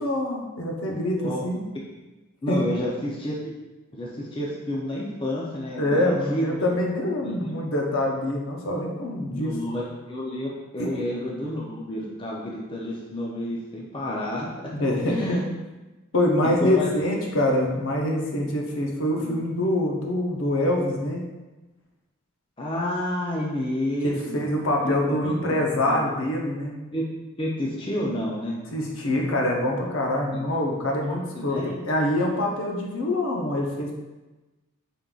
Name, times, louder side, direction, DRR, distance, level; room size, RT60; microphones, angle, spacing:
voice 1, 0.0-1.6 2.5-2.8 5.8-9.6 10.8-11.0 14.7-15.4 16.1-21.2 24.0-26.8 28.7-34.0, left 1 dB, 70° left, -1 dB, 0.8 m, -25 dB
voice 2, 2.4-3.5 3.9-6.7 7.2-7.6 9.3-14.5 15.0-15.4 16.4-16.9 19.1-19.4 22.6-24.4 24.8-25.3 25.9-26.0 26.9-27.1 27.4-28.6 31.0-31.8, left 1 dB, 25° left, -4 dB, 0.5 m, -30 dB
5.2 x 3.7 x 2.4 m, 1.1 s
head